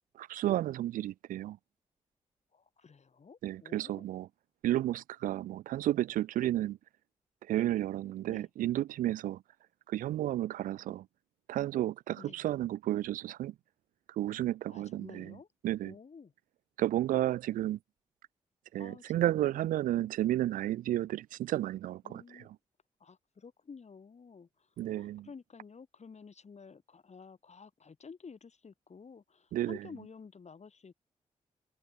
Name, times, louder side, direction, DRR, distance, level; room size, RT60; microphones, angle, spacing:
voice 1, 0.2-1.6 3.4-4.3 4.6-6.8 7.4-9.4 9.9-11.1 11.5-13.5 14.1-15.4 15.6-15.9 16.8-17.8 18.7-22.5 24.8-25.3 29.5-29.8, right 13 dB, 85° right, 0.4 m, -32 dB
voice 2, 2.5-4.1 8.3-8.5 12.2-12.4 14.7-15.5 15.8-16.3 18.8-19.6 19.9-20.1 22.0-22.5 23.0-24.7 25.0-30.9, left 5 dB, 55° left, 3.1 m, -52 dB
supercardioid pair, 40°, 14 cm